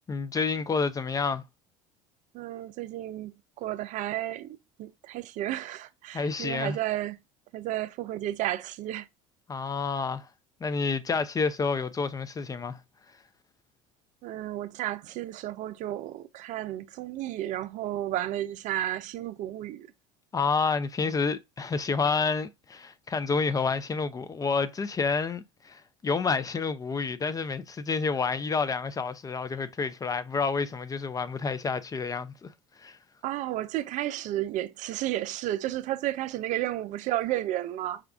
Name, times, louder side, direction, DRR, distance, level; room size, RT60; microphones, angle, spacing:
voice 1, 0.1-1.4 6.1-6.8 9.5-10.3 10.6-12.8 20.3-32.5 32.8-33.0, left 4 dB, 25° left, 0.4 m, -29 dB
voice 2, 2.3-3.3 3.6-7.2 7.5-9.1 14.2-19.9 33.2-38.0, right 14 dB, 55° right, 0.4 m, -32 dB
4.9 x 2.3 x 3.4 m
supercardioid pair, 85°, 15 cm